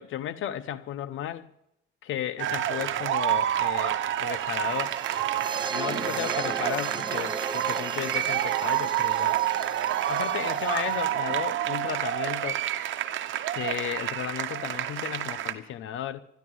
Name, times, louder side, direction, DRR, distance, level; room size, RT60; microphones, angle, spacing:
voice 1, 0.0-1.5 2.0-5.0 5.7-9.4 10.1-12.6 13.5-16.2, left 11 dB, 80° left, 0.8 m, -34 dB
sound 1, 2.4-15.5, right 12 dB, 75° right, 1.0 m, -28 dB
sound 2, 4.7-11.1, right 4 dB, 25° right, 0.7 m, -36 dB
13.5 x 10.5 x 9.3 m
cardioid pair, 90°, 20 cm